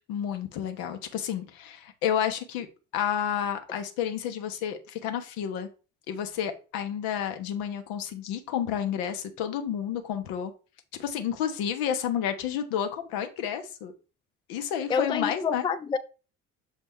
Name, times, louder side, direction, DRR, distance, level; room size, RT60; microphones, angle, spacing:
voice 1, 0.1-2.7 2.9-5.7 6.1-10.5 11.0-13.9 14.5-15.7, left 9 dB, 65° left, 1.1 m, -30 dB
voice 2, 14.9-16.0, left 6 dB, 15° left, 0.4 m, -27 dB
6.5 x 4.2 x 3.6 m
figure-of-eight pair, 55°, 39 cm